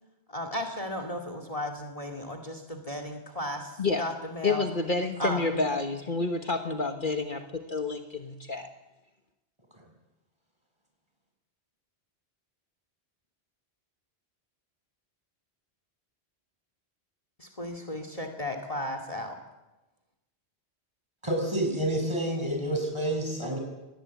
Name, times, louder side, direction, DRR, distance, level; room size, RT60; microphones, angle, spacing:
voice 1, 0.3-4.7 5.2-5.6 17.4-19.4, left 1 dB, 30° left, 6 dB, 2.3 m, -35 dB
voice 2, 4.4-8.7, left 3 dB, 50° left, 5 dB, 1.5 m, -29 dB
voice 3, 21.2-23.6, right 1 dB, 25° right, 2 dB, 6.6 m, -28 dB
24.0 x 19.5 x 8.3 m, 1.1 s
omnidirectional pair, 1.1 m